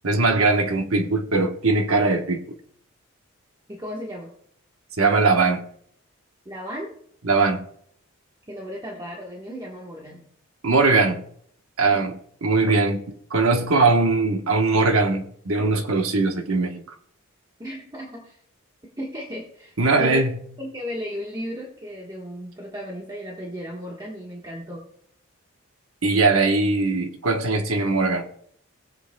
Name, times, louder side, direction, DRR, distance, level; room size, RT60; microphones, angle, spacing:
voice 1, 0.0-2.4 5.0-5.6 7.2-7.6 10.6-11.2 11.8-12.1 12.4-13.0 13.3-16.8 19.8-20.4 26.0-28.3, right 3 dB, 80° right, 1.1 m, -20 dB
voice 2, 3.7-4.3 6.4-6.9 8.5-10.3 11.9-12.1 17.6-18.4 19.0-20.2 20.6-24.8, equal, 20° right, 1.3 m, -35 dB
18.5 x 7.8 x 2.2 m
head